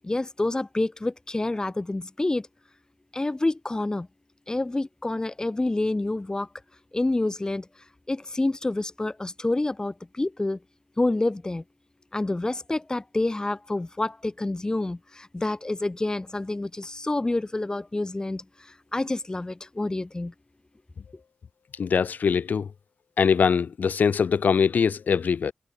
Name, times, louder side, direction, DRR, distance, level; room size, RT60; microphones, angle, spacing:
voice 1, 0.0-2.5 3.1-4.1 4.5-6.5 6.9-7.7 8.1-10.6 11.0-11.6 12.1-20.3, left 2 dB, 25° left, 1.5 m, -28 dB
voice 2, 21.8-22.7 23.2-25.5, left 6 dB, 85° left, 2.5 m, -22 dB
cardioid pair, 65°, 3 cm